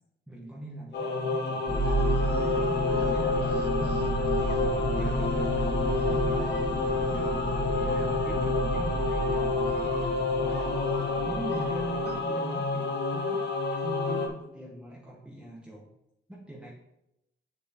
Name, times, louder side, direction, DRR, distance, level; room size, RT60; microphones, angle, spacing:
voice 1, 0.3-1.7 2.4-4.1 4.5-6.6 7.1-10.5 11.3-13.4 13.7-15.9 16.3-16.7, right 1 dB, 5° right, -5 dB, 1.1 m, -41 dB
Singing / Musical instrument, 0.9-14.3, left 3 dB, 60° left, 1.0 m, -29 dB
sound 1, 1.7-12.1, right 1 dB, 25° left, 1.5 m, -32 dB
sound 2, 1.8-12.2, right 6 dB, 55° right, 0.7 m, -46 dB
7.4 x 6.8 x 2.9 m, 0.87 s
cardioid pair, 90°, 20 cm